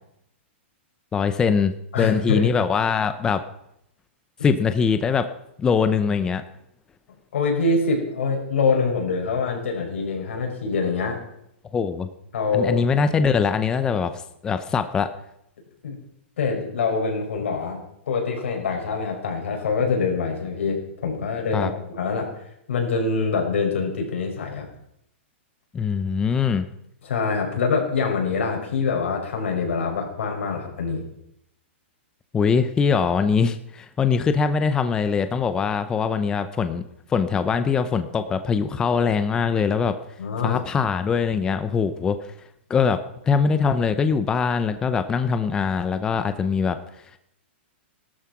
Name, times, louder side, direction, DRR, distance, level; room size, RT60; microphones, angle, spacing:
voice 1, 1.1-3.4 4.4-5.3 5.6-6.4 11.7-12.1 12.5-15.1 21.5-21.7 25.7-26.7 32.3-36.8 37.1-40.0 40.4-42.3 42.7-46.8, left 5 dB, 10° left, 10 dB, 0.6 m, -22 dB
voice 2, 1.9-2.5 7.3-11.2 12.3-12.9 15.8-16.0 16.4-24.7 27.0-31.1 40.2-40.6, left 4 dB, 80° left, 2 dB, 5.9 m, -25 dB
17.0 x 12.5 x 6.0 m, 0.77 s
hypercardioid pair, 165°, 7 cm